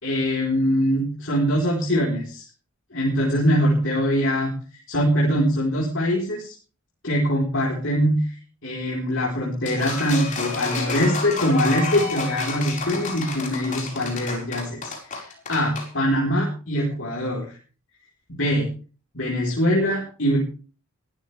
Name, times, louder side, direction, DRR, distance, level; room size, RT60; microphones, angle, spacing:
voice 1, 0.0-2.4 2.9-4.6 4.9-6.5 7.0-8.3 8.6-17.6 18.4-18.7 19.1-20.4, equal, 55° left, -2 dB, 4.3 m, -23 dB
sound 1, 9.7-15.9, left 3 dB, 35° left, 4.8 m, -30 dB
22.0 x 13.5 x 3.5 m, 0.37 s
head